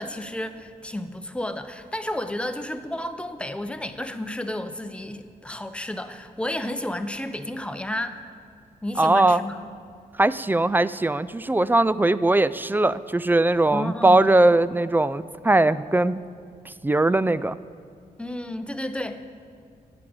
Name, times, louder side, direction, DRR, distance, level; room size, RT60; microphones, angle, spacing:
voice 1, 0.0-8.2 8.8-9.7 13.7-14.3 18.2-19.2, left 1 dB, 5° left, 9 dB, 0.7 m, -32 dB
voice 2, 9.0-9.4 10.2-16.2 16.8-17.6, right 2 dB, 10° right, 16 dB, 0.3 m, -20 dB
11.0 x 7.7 x 8.7 m, 2.4 s
wide cardioid pair, 100°, 16 cm